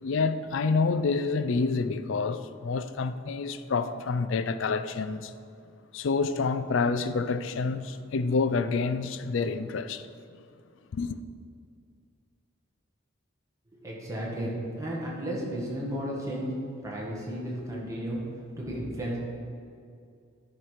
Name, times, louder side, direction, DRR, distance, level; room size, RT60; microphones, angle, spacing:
voice 1, 0.0-5.3 5.9-10.1 10.9-11.2, left 4 dB, 65° left, 0.4 m, -28 dB
voice 2, 13.8-16.5 16.8-18.2 18.6-19.2, equal, 15° right, 1.6 m, -33 dB
10.5 x 4.6 x 4.9 m
head